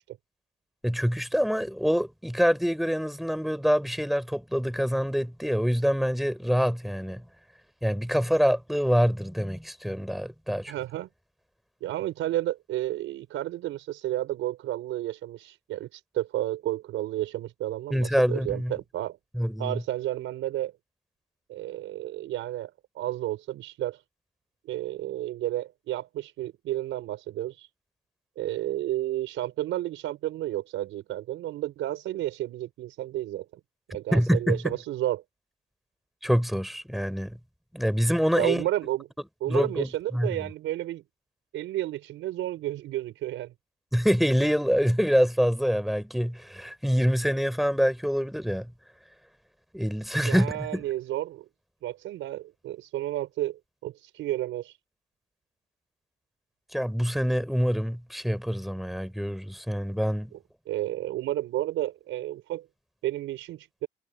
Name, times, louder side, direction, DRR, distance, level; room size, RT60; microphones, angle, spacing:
voice 1, 0.8-7.2 7.8-10.7 17.9-18.7 19.3-19.8 34.1-34.8 36.2-37.4 37.7-38.7 39.5-40.3 43.9-48.7 49.7-50.8 56.7-60.3, equal, ahead, 6.3 m, -25 dB
voice 2, 10.7-11.1 11.8-19.2 19.6-20.7 21.5-24.0 24.6-27.7 28.4-33.5 33.9-35.2 38.4-39.1 39.4-41.0 41.5-43.5 50.2-51.5 51.8-54.8 60.3-60.4 60.7-62.7 63.0-63.9, right 14 dB, 90° right, 5.3 m, -31 dB
cardioid pair, 90°, 20 cm